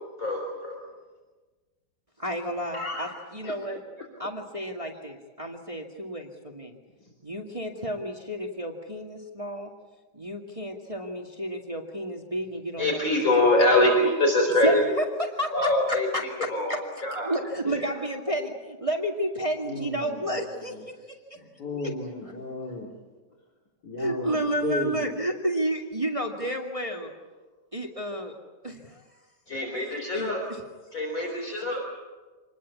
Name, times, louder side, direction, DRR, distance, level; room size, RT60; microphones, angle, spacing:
voice 1, 0.2-0.8 12.8-15.0 15.5-16.1 16.5-17.4 17.7-17.9 29.5-30.4 30.9-31.8, left 1 dB, 50° left, 1 dB, 4.7 m, -24 dB
voice 2, 2.2-3.8 4.2-6.7 7.2-9.7 10.1-13.5 14.6-16.8 17.2-20.9 24.0-27.1 27.7-28.4 28.6-29.0 30.1-30.3, right 1 dB, 20° right, 1 dB, 2.2 m, -31 dB
voice 3, 2.7-3.1 3.4-3.5 4.0-4.1 17.7-17.8 19.6-20.4 20.7-20.8 21.3-22.9 23.8-25.1, left 2 dB, 70° left, -3 dB, 3.9 m, -34 dB
27.0 x 20.5 x 8.5 m, 1.3 s
omnidirectional pair, 1.8 m